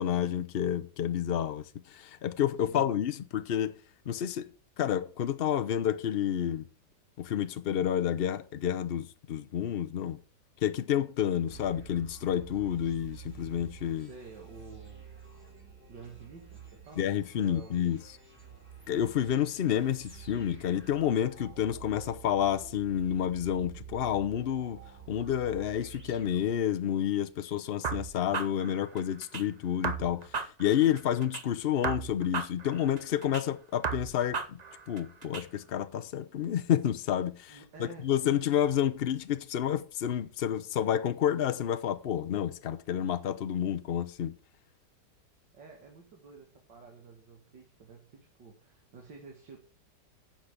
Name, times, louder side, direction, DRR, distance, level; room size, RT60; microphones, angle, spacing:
voice 1, 0.0-3.7 4.1-4.5 4.8-6.7 7.2-10.2 10.6-14.1 17.0-18.0 18.9-24.8 25.1-34.6 34.9-44.3, left 10 dB, 70° left, 0.5 m, -29 dB
sound 1, 11.5-27.1, right 7 dB, 5° right, 3.5 m, -49 dB
voice 2, 14.0-15.1 15.9-17.1 17.3-17.8 37.5-38.1 45.5-49.6, right 4 dB, 90° right, 2.7 m, -50 dB
sound 2, 27.8-29.4 29.8-31.4 31.8-33.4 33.8-35.4, right 5 dB, 65° right, 0.4 m, -36 dB
10.0 x 7.4 x 5.1 m
omnidirectional pair, 1.9 m